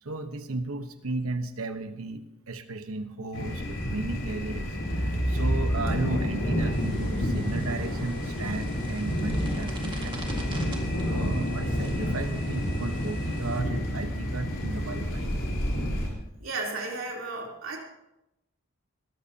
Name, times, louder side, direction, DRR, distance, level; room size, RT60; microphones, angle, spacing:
voice 1, 0.0-10.5 11.1-15.3, right 2 dB, 85° right, 8 dB, 1.1 m, -35 dB
sound 1, 3.3-16.1, equal, 60° left, 4.1 m, -29 dB
sound 2, 6.7-13.6, right 2 dB, 25° right, 1.9 m, -46 dB
voice 2, 16.4-17.8, right 3 dB, 70° right, -1 dB, 3.5 m, -34 dB
20.5 x 14.0 x 2.9 m, 0.88 s
head